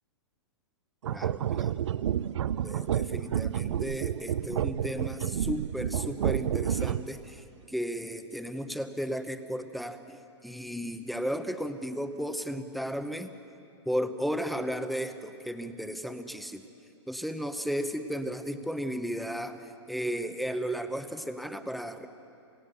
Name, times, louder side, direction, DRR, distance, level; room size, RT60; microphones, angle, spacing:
sound 1, 1.0-7.2, right 10 dB, 75° right, 0.5 m, -30 dB
voice 1, 1.1-1.7 2.6-10.2 10.4-13.3 13.9-16.6 17.1-22.1, equal, ahead, 9 dB, 0.9 m, -34 dB
27.5 x 16.0 x 6.8 m, 2.6 s
hypercardioid pair, 125°, 15 cm